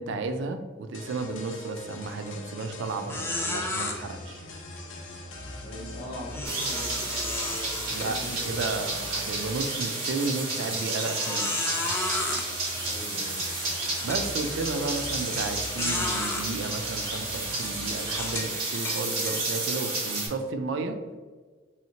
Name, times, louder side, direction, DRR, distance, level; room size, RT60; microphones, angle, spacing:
voice 1, 0.0-4.4 7.9-11.5 14.0-21.0, right 3 dB, 65° right, 8 dB, 0.4 m, -33 dB
sound 1, 0.9-18.4, left 2 dB, 75° left, 0.6 m, -42 dB
sound 2, 2.0-2.3 2.6-2.7 3.1-3.9 6.3-8.6 9.1-9.3 9.9-10.0 11.0-12.4 13.3-13.4 13.9-14.2 15.3-15.4 15.8-16.4 17.1-17.3 18.1-19.4, left 2 dB, 10° left, 0.3 m, -32 dB
voice 2, 5.6-7.4 7.8-8.7 12.8-13.4, equal, 45° left, -3 dB, 0.8 m, -41 dB
sound 3, 6.4-20.3, right 2 dB, 85° right, 1.3 m, -31 dB
3.2 x 2.8 x 2.8 m, 1.4 s
head